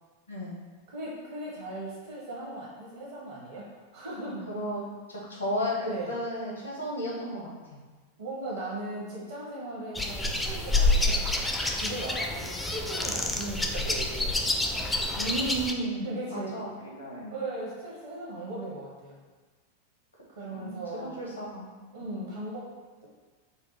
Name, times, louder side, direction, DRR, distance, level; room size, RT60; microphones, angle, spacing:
voice 1, 0.9-4.4 5.9-6.1 8.2-11.4 11.7-14.4 16.0-16.6 17.3-19.2 20.3-21.2 21.9-22.7, right 2 dB, 65° right, -6 dB, 0.8 m, -38 dB
voice 2, 4.5-4.8 5.1-7.8 12.6-12.7 15.1-17.3 20.5-21.7 22.0-22.2, equal, 80° left, -4 dB, 1.0 m, -34 dB
sound 1, 9.9-15.7, left 2 dB, 10° left, 0.3 m, -28 dB
5.2 x 2.1 x 2.9 m, 1.4 s
figure-of-eight pair, 90°, 0 cm